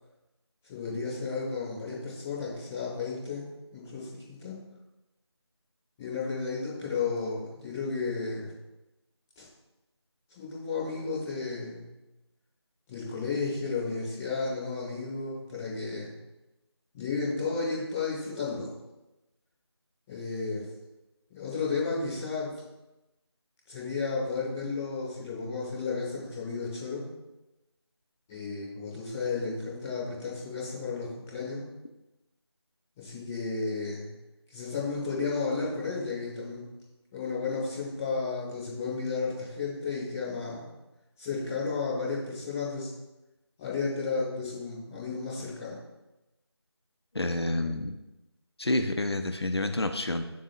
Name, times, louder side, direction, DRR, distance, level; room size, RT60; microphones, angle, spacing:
voice 1, 0.7-3.4 3.7-4.6 6.0-8.5 9.3-9.4 10.3-11.8 12.9-16.1 16.9-18.7 20.1-20.6 21.3-22.5 23.6-27.1 28.3-31.6 33.0-34.1 34.5-36.7 37.1-40.6 41.2-42.9 43.6-45.8, left 4 dB, 5° left, -13 dB, 1.5 m, -33 dB
voice 2, 47.1-48.0 48.6-50.2, left 2 dB, 65° left, 7 dB, 0.8 m, -28 dB
15.0 x 7.3 x 2.5 m, 1.0 s
figure-of-eight pair, 175°, 14 cm